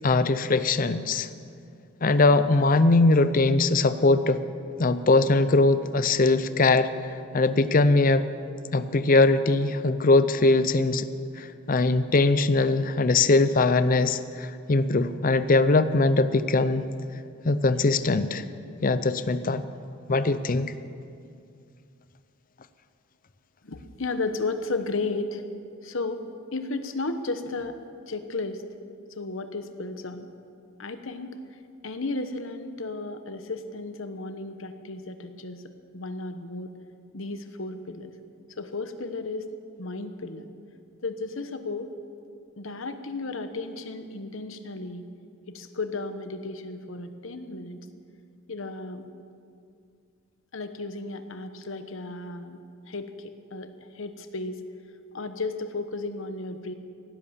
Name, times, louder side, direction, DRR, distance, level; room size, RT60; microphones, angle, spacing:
voice 1, 0.0-1.3 2.0-4.4 4.8-6.9 7.3-8.3 8.7-11.1 11.4-16.9 17.4-18.4 18.8-19.6 20.1-20.7, left 3 dB, 40° left, 12 dB, 0.6 m, -21 dB
voice 2, 23.6-25.4 25.8-26.2 26.5-27.8 28.1-28.6 29.1-30.3 30.8-31.4 31.8-35.6 35.9-36.7 37.1-38.1 38.6-39.4 39.8-40.4 41.0-41.9 42.6-45.0 45.5-47.8 48.5-49.1 50.5-52.6 52.9-53.7 53.9-54.6 55.1-56.7, left 3 dB, 65° left, 9 dB, 1.0 m, -34 dB
17.5 x 11.0 x 7.2 m, 2.4 s
head